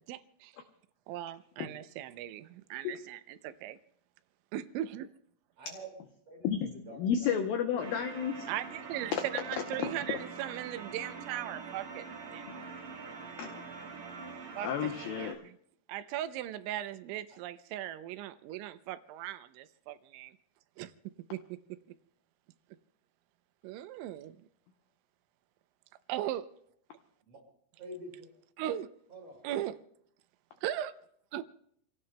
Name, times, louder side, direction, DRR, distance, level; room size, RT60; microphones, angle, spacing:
voice 1, 0.1-0.5 1.1-3.8 4.5-5.1 8.5-12.0 12.3-12.4 12.9-13.0 14.6-15.5 15.9-20.3 20.8-20.9 21.3-21.4 23.6-24.4 26.1-26.5 28.6-28.9 29.4-29.8 30.6-30.9 31.3-31.4, right 12 dB, 90° right, 3.1 m, -38 dB
voice 2, 5.6-7.0 7.3-7.4 27.3-27.4 27.8-28.3 29.1-29.4, right 1 dB, 35° right, 5.9 m, -47 dB
voice 3, 6.4-8.5 9.1-9.2 9.8-10.2 13.4-13.5 14.6-15.4, left 8 dB, 80° left, 2.1 m, -32 dB
sound 1, 7.8-15.3, right 4 dB, 65° right, 3.8 m, -44 dB
29.5 x 17.0 x 2.2 m
omnidirectional pair, 5.3 m